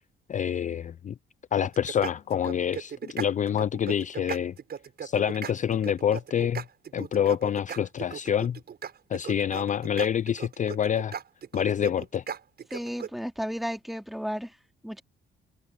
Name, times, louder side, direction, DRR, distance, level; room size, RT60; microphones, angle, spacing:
voice 1, 0.3-1.1 1.5-4.5 5.0-6.6 6.9-8.6 9.1-11.2 11.5-12.2, left 9 dB, 40° left, 0.4 m, -27 dB
sound 1, 1.6-13.1, right 7 dB, 55° right, 6.4 m, -37 dB
voice 2, 12.7-14.5 14.8-15.0, equal, ahead, 3.1 m, -33 dB
cardioid pair, 90°, 20 cm